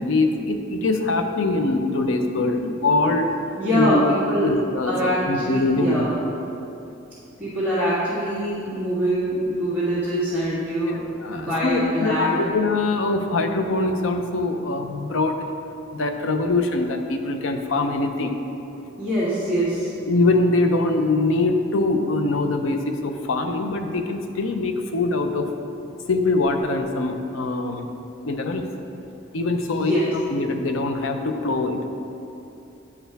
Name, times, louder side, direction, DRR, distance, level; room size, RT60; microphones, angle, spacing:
voice 1, 0.0-3.3 3.7-4.0 4.4-4.9 5.2-6.0 10.9-15.5 15.9-18.3 20.1-25.5 26.1-27.9 28.2-28.6 29.3-31.9, left 2 dB, 75° left, 5 dB, 0.5 m, -23 dB
voice 2, 3.6-4.5 4.8-6.2 7.4-12.4 19.0-19.9 29.6-30.1, equal, 5° left, -15 dB, 1.6 m, -24 dB
9.7 x 4.5 x 3.4 m, 2.8 s
head